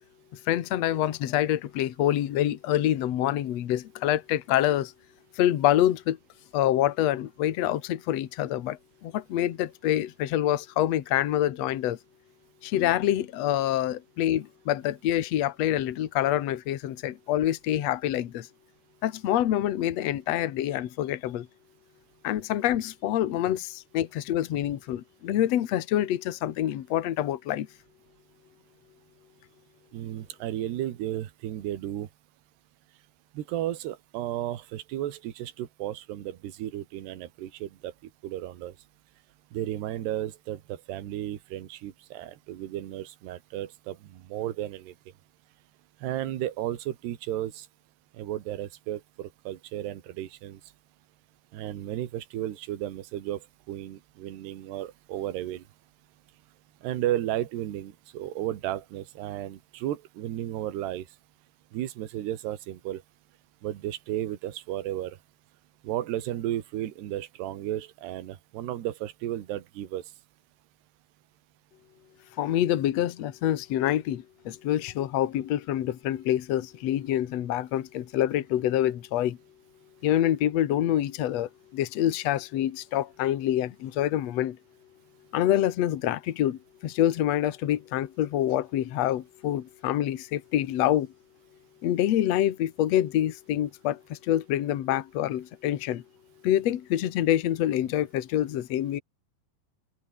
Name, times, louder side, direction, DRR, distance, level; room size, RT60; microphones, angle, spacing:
voice 1, 0.5-4.9 5.3-6.2 6.5-12.0 12.6-18.5 19.0-21.5 22.2-27.7 72.4-79.4 80.0-84.6 85.3-91.1 91.8-96.0 96.4-99.0, left 12 dB, 80° left, 1.5 m, -26 dB
voice 2, 29.9-32.1 33.3-37.9 38.2-38.8 39.5-44.9 46.0-47.7 48.1-50.6 51.5-55.6 56.8-61.1 61.7-63.0 63.6-65.2 65.8-70.0, right 13 dB, 70° right, 3.8 m, -34 dB
omnidirectional pair, 5.2 m